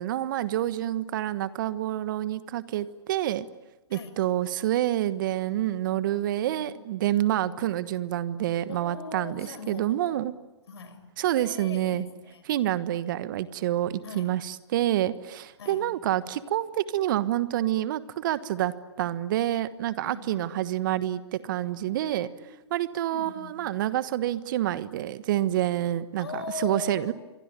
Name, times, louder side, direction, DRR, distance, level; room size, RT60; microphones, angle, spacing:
voice 1, 0.0-3.5 3.9-10.3 11.2-12.0 12.5-22.3 22.7-27.1, right 13 dB, 45° right, 14 dB, 1.3 m, -28 dB
voice 2, 6.4-6.7 7.5-7.7 8.7-10.3 10.7-12.4 14.0-14.4 15.6-15.9 20.0-20.6 22.0-22.6 23.1-23.6 26.2-27.1, left 5 dB, 65° left, 10 dB, 5.8 m, -41 dB
27.0 x 24.0 x 9.1 m, 1.1 s
figure-of-eight pair, 125°, 15 cm